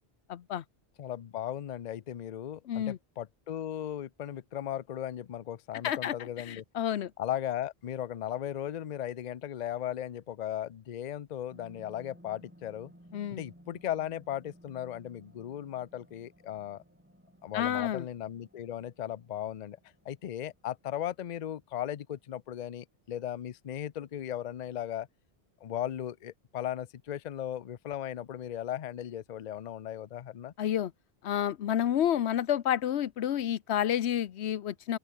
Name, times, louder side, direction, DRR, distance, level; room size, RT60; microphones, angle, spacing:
voice 1, 0.3-0.6 2.7-3.0 5.8-7.1 13.1-13.4 17.5-18.0 30.6-30.9 31.2-35.0, left 10 dB, 90° left, 1.0 m, -30 dB
voice 2, 1.0-6.6 7.2-12.9 13.3-16.8 17.4-19.8 20.0-25.1 25.6-30.5, left 11 dB, 50° left, 0.6 m, -37 dB
sound 1, 11.5-22.3 22.7-22.8, equal, 10° right, 7.3 m, -58 dB
open air
omnidirectional pair, 1.1 m